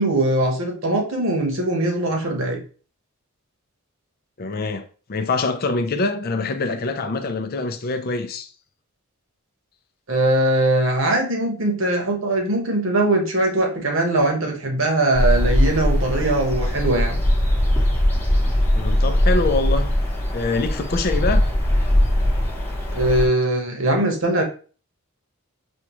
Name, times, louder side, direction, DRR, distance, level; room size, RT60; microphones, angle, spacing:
voice 1, 0.0-2.6 10.1-17.2 22.9-24.4, right 2 dB, 60° right, 1.1 m, -21 dB
voice 2, 4.4-8.5 18.8-20.0 20.3-21.4, left 3 dB, 45° left, 0.5 m, -24 dB
sound 1, 15.1-23.3, left 1 dB, 10° left, 1.0 m, -20 dB
5.3 x 2.3 x 3.0 m
head